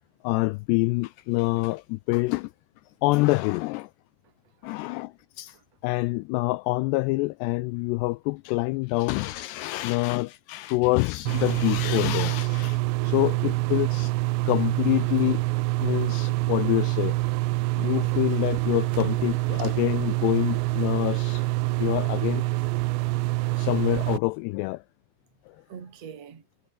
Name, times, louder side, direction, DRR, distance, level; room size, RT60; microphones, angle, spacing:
voice 1, 0.2-2.5 3.0-3.9 4.6-5.6 5.8-14.1 14.5-15.4 15.8-17.2 17.7-21.5 21.8-22.4 23.6-24.8, left 22 dB, 85° left, 2.5 m, -26 dB
voice 2, 4.2-4.9 5.5-5.6 13.0-13.5 15.7-16.2 18.9-20.1 25.7-26.5, right 7 dB, 40° right, 3.8 m, -45 dB
sound 1, 11.3-24.2, right 21 dB, 85° right, 3.0 m, -26 dB
omnidirectional pair, 5.2 m